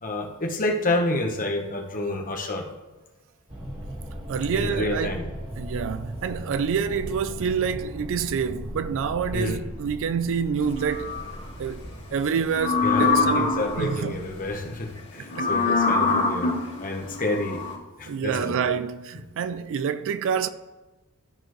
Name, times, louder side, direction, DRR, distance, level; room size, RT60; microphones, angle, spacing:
voice 1, 0.0-2.6 4.5-5.3 9.3-9.6 12.8-17.6 18.0-18.6, left 2 dB, 40° left, 1.1 m, -29 dB
sound 1, 3.5-14.9, equal, 25° right, 2.0 m, -38 dB
voice 2, 4.3-5.2 5.6-11.2 11.6-11.8 12.1-14.2 15.3-15.5 18.1-20.5, right 6 dB, 60° right, 0.4 m, -27 dB
sound 2, 10.6-11.4 12.5-14.0 15.3-17.8, left 4 dB, 60° left, 2.2 m, -24 dB
12.5 x 4.4 x 3.1 m
head